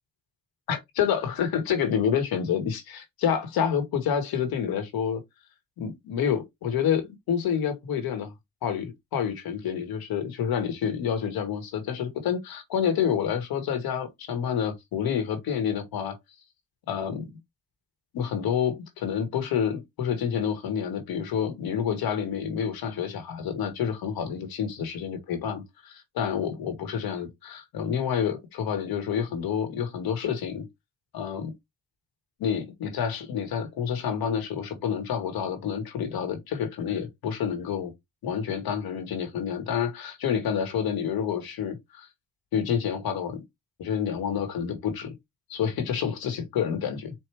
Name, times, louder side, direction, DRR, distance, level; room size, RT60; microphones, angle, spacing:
voice 1, 0.7-5.2 5.8-8.3 8.6-16.2 16.9-17.3 18.1-30.7 31.1-31.5 32.4-37.9 38.2-42.1 42.5-43.4 43.8-45.1 45.5-47.1, left 8 dB, 85° left, 1.5 m, -28 dB
4.6 x 2.5 x 3.4 m
cardioid pair, 70°, 35 cm